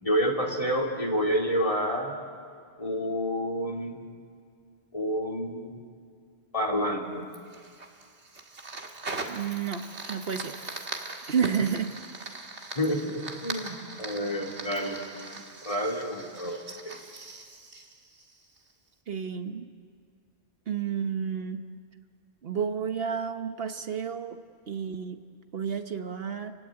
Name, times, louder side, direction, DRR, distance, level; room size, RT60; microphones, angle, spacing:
voice 1, 0.0-2.1 2.8-4.0 4.9-5.8 6.5-7.2 12.7-15.0 15.6-16.9, equal, 30° left, 3 dB, 2.9 m, -29 dB
Fire, 7.3-18.7, right 3 dB, 85° right, 2.3 m, -40 dB
voice 2, 9.3-9.8 10.1-10.6 11.3-11.9 19.1-19.7 20.7-21.6 22.4-24.4 24.7-25.2 25.5-26.5, right 7 dB, 65° right, 7 dB, 1.2 m, -30 dB
30.0 x 16.5 x 9.8 m, 2.2 s
omnidirectional pair, 1.1 m